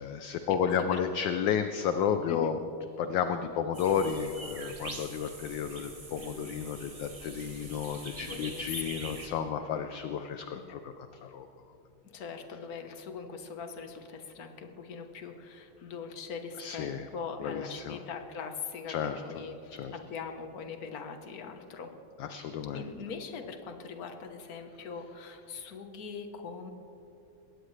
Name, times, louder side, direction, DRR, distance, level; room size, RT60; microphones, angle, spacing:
voice 1, 0.0-2.6 3.0-11.5 16.6-17.1 17.4-18.0 18.9-19.2 19.7-20.0 22.2-22.8, left 7 dB, 70° left, 8 dB, 1.3 m, -32 dB
voice 2, 0.6-1.0 2.3-2.5 8.2-9.3 10.5-10.6 12.1-21.9 22.7-26.7, left 5 dB, 50° left, 6 dB, 1.5 m, -41 dB
sound 1, 3.7-9.3, right 3 dB, 25° right, 0.8 m, -44 dB
21.0 x 18.0 x 3.3 m, 2.8 s
omnidirectional pair, 2.3 m